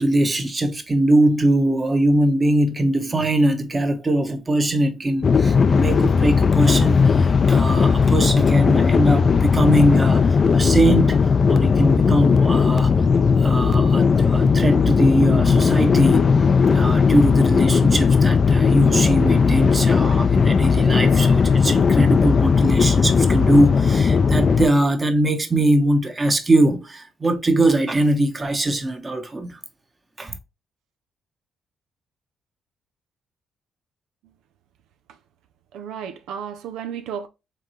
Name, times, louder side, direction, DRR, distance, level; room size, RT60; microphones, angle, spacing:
voice 1, 0.0-12.9 13.4-16.3 16.7-29.6 30.2-30.4, right 1 dB, 25° right, 1.1 m, -21 dB
sound 1, 5.2-24.7, left 5 dB, 40° left, 0.4 m, -17 dB
voice 2, 35.7-37.3, right 8 dB, 90° right, 0.5 m, -33 dB
4.6 x 3.7 x 3.1 m
cardioid pair, 90°, 0 cm